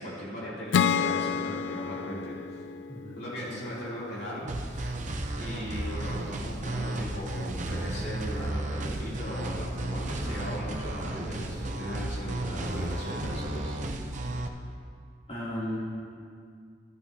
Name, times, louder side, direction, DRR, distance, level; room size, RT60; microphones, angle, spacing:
voice 1, 0.0-2.4 3.2-5.0 5.4-13.8, left 1 dB, 65° left, -7 dB, 3.0 m, -38 dB
Acoustic guitar / Strum, 0.7-4.2, left 7 dB, 85° left, 0.3 m, -30 dB
voice 2, 2.9-3.6 15.3-15.8, equal, 35° left, -9 dB, 2.8 m, -36 dB
sound 1, 4.5-14.5, right 2 dB, 45° right, 0.7 m, -33 dB
13.5 x 12.5 x 2.8 m, 2.2 s
head